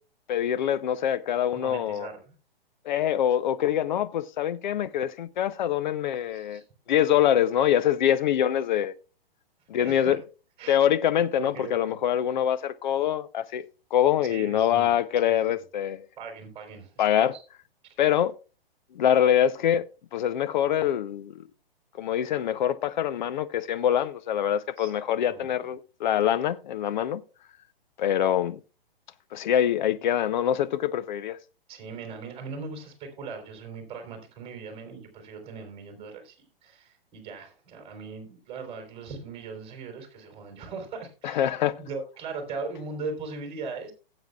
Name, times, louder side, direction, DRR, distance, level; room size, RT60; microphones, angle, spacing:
voice 1, 0.3-2.1 2.9-6.6 6.9-8.9 9.7-10.2 10.7-13.6 13.9-16.1 17.0-17.3 18.0-18.3 18.9-19.8 20.1-21.3 22.0-27.2 28.0-28.6 29.3-31.4 41.2-41.8, left 10 dB, 50° left, 0.7 m, -24 dB
voice 2, 1.5-2.2 6.3-6.6 9.8-10.2 10.6-10.8 11.4-12.0 14.3-14.9 15.2-15.5 16.2-17.4 17.8-17.9 24.8-25.0 25.3-25.6 31.7-41.5 41.8-43.9, right 4 dB, 20° right, 3.7 m, -39 dB
17.5 x 8.0 x 2.3 m
figure-of-eight pair, 120°, 29 cm